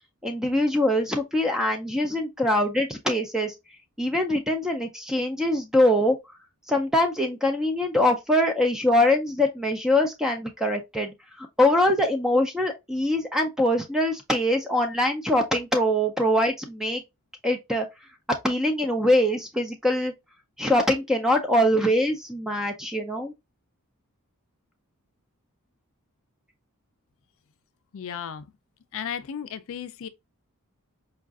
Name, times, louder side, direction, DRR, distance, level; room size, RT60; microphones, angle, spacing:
voice 1, 0.2-3.5 4.0-6.2 6.7-17.0 17.4-17.9 18.4-20.1 20.6-23.3, left 1 dB, ahead, 0.4 m, -23 dB
voice 2, 27.9-28.4 28.9-30.1, left 8 dB, 65° left, 0.4 m, -34 dB
4.6 x 2.4 x 2.4 m
head